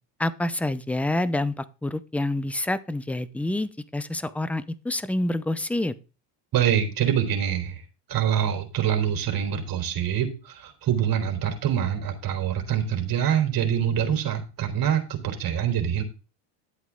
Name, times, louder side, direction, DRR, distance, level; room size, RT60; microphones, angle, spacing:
voice 1, 0.2-5.9, left 1 dB, 5° left, 17 dB, 0.6 m, -27 dB
voice 2, 6.5-7.8 8.1-16.0, right 9 dB, 45° right, 4 dB, 3.6 m, -25 dB
12.0 x 8.1 x 3.7 m, 0.33 s
supercardioid pair, 110°, 47 cm